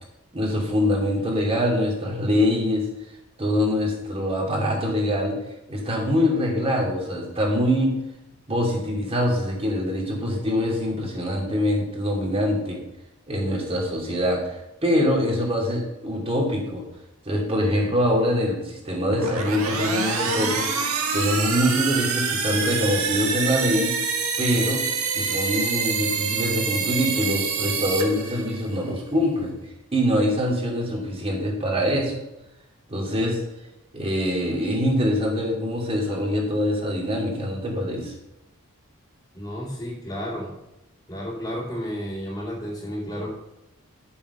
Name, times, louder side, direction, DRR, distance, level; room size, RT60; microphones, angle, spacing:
voice 1, 0.3-2.8 3.4-5.3 5.7-7.9 8.5-12.8 13.3-16.8 17.3-23.9 24.4-24.8 25.1-29.5 29.9-32.1 32.9-33.4 33.9-38.1, equal, 25° right, -2 dB, 2.8 m, -24 dB
sound 1, 19.1-28.8, right 5 dB, 70° right, 1.6 m, -26 dB
voice 2, 39.3-40.5 41.1-43.3, equal, 20° left, -8 dB, 2.7 m, -32 dB
11.0 x 7.1 x 5.6 m, 0.91 s
head